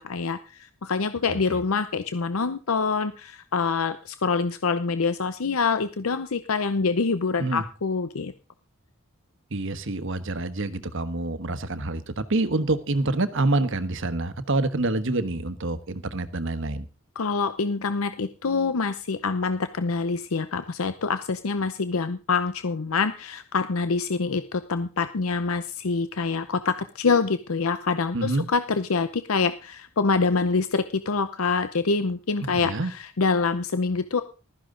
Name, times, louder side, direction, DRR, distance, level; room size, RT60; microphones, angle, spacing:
voice 1, 0.0-8.3 17.2-34.2, left 4 dB, 80° left, 11 dB, 0.7 m, -26 dB
voice 2, 1.3-1.6 7.4-7.6 9.5-16.9 28.1-28.5 32.4-32.9, right 2 dB, 60° right, 12 dB, 1.3 m, -27 dB
15.5 x 13.0 x 3.8 m, 0.34 s
head